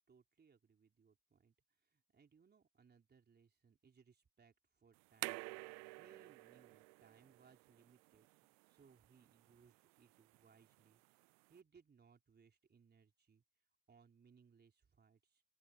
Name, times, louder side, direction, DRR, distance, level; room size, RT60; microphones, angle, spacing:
voice 1, 0.0-5.5 6.0-11.2 11.5-13.4 13.9-15.4, right 6 dB, 20° right, 4.2 m, -68 dB
sound 1, 4.9-11.6, right 40 dB or more, 40° right, 0.5 m, -52 dB
open air
figure-of-eight pair, 80°, 46 cm